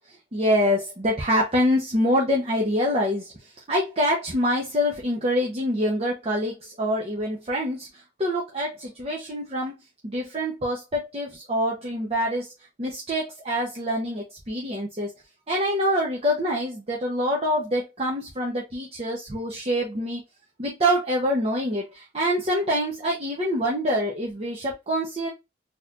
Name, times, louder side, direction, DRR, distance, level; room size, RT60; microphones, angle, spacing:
voice 1, 0.3-3.3 3.7-9.7 10.0-12.5 12.8-15.1 15.5-20.2 20.6-25.3, equal, 35° right, -2 dB, 0.8 m, -25 dB
4.0 x 2.9 x 2.4 m, 0.22 s
head